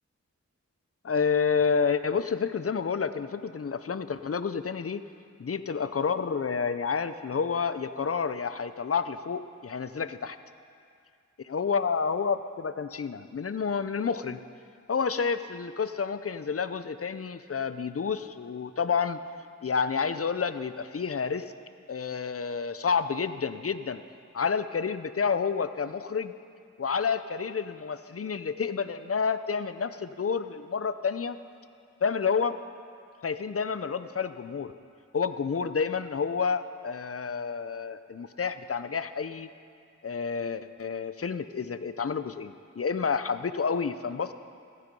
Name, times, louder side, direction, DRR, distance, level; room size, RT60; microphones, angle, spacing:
voice 1, 1.0-5.0 5.4-10.4 11.4-14.4 14.9-19.2 19.6-21.4 21.9-24.0 24.3-26.3 26.8-31.4 32.0-32.6 33.2-34.7 35.1-39.5 40.0-44.3, left 6 dB, 50° left, 12 dB, 0.6 m, -29 dB
15.0 x 12.5 x 5.4 m, 2.3 s
wide cardioid pair, 50°, 30 cm